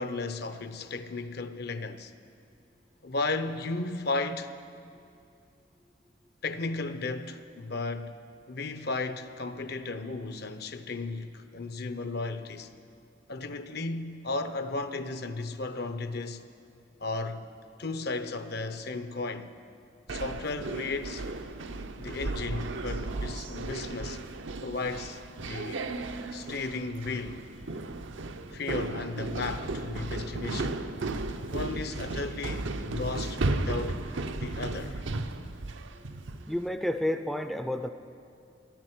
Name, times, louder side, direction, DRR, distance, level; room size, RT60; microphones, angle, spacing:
voice 1, 0.0-2.1 3.0-4.5 6.4-8.2 8.5-12.7 13.3-16.4 17.0-17.5 17.8-19.5 20.1-21.3 22.0-24.2 24.6-25.9 26.3-27.4 28.5-30.8 31.4-34.0 34.4-35.0, left 3 dB, 55° left, 0.7 m, -34 dB
sound 1, 20.1-36.6, right 2 dB, 80° right, 0.7 m, -35 dB
voice 2, 36.5-37.9, left 1 dB, ahead, 0.4 m, -30 dB
12.5 x 10.5 x 9.3 m
head